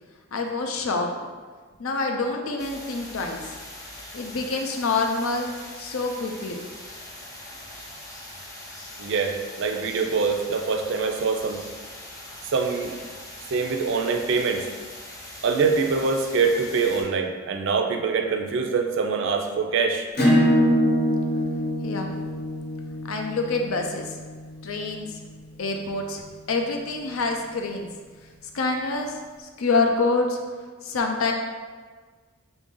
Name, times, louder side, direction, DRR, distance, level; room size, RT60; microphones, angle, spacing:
voice 1, 0.3-1.1 1.8-3.6 4.1-6.6 21.8-22.1 23.1-24.2 24.6-25.2 25.6-27.9 28.5-30.4 30.8-31.3, left 3 dB, 75° left, 3 dB, 0.5 m, -26 dB
sound 1, 2.6-17.0, left 1 dB, 15° left, 0.6 m, -42 dB
voice 2, 9.0-11.6 12.5-12.9 13.5-14.7 15.4-20.1, right 4 dB, 60° right, 4 dB, 0.4 m, -24 dB
Acoustic guitar / Strum, 20.1-25.4, equal, 45° left, 0.8 m, -24 dB
4.0 x 2.6 x 3.7 m, 1.4 s
head